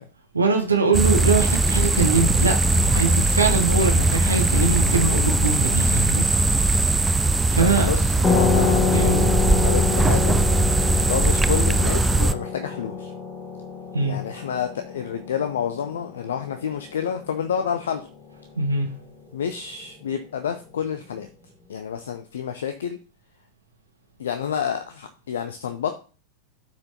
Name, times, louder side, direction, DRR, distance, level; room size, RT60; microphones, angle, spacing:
voice 1, 0.3-6.3 6.6-6.7 7.5-7.9 8.9-9.2 13.9-14.2 18.5-18.9, right 4 dB, 80° right, 1.0 m, -22 dB
sound 1, 0.9-12.3, right 2 dB, 10° right, 0.4 m, -20 dB
voice 2, 7.6-9.3 9.6-10.4 11.1-13.1 14.0-18.1 19.3-21.3 21.7-23.0 24.2-25.9, left 8 dB, 65° left, 0.5 m, -29 dB
sound 2, 8.2-17.4, left 5 dB, 15° left, 1.2 m, -27 dB
13.0 x 4.5 x 2.8 m
figure-of-eight pair, 90°, 0 cm